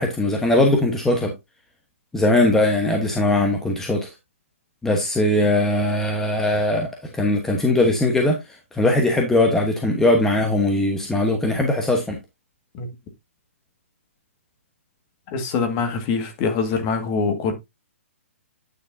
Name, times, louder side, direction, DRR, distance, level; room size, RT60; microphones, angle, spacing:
voice 1, 0.0-1.3 2.1-4.1 4.8-6.9 7.1-8.4 8.7-12.2, left 1 dB, 5° left, 1.1 m, -20 dB
voice 2, 15.3-17.5, left 5 dB, 30° left, 1.8 m, -24 dB
9.4 x 6.6 x 2.7 m
hypercardioid pair, 150°, 7 cm